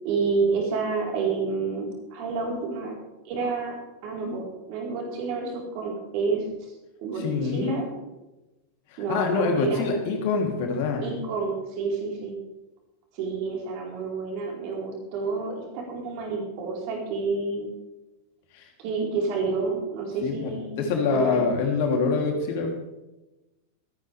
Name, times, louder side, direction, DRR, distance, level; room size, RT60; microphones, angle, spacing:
voice 1, 0.0-2.9 3.2-3.8 4.0-6.5 7.0-7.8 9.0-9.8 11.0-12.4 13.1-17.7 18.8-21.5, right 4 dB, 45° right, -1 dB, 4.3 m, -29 dB
voice 2, 7.2-7.9 8.9-11.0 18.5-18.7 20.2-22.7, left 4 dB, 50° left, 2 dB, 3.2 m, -25 dB
26.5 x 9.7 x 3.5 m, 1.0 s
figure-of-eight pair, 90°, 0 cm